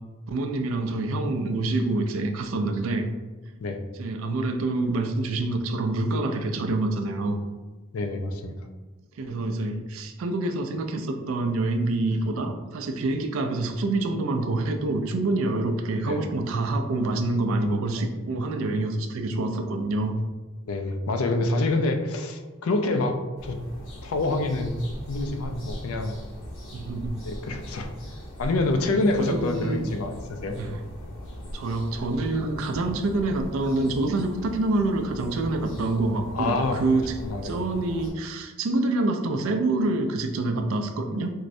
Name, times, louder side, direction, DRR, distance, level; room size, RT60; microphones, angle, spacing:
voice 1, 0.3-3.1 4.0-7.4 9.2-20.2 26.7-27.2 28.9-29.9 30.6-30.8 31.5-37.2 37.4-41.3, right 2 dB, 70° right, 5 dB, 0.4 m, -26 dB
voice 2, 7.9-8.7 16.0-16.2 17.9-18.1 20.7-23.6 24.0-24.8 25.1-26.2 27.2-27.9 28.4-30.6 36.3-37.5, left 2 dB, 85° left, 5 dB, 0.4 m, -27 dB
sound 1, 23.4-38.1, equal, 60° left, 0.8 m, -40 dB
4.4 x 2.1 x 2.5 m, 1.2 s
head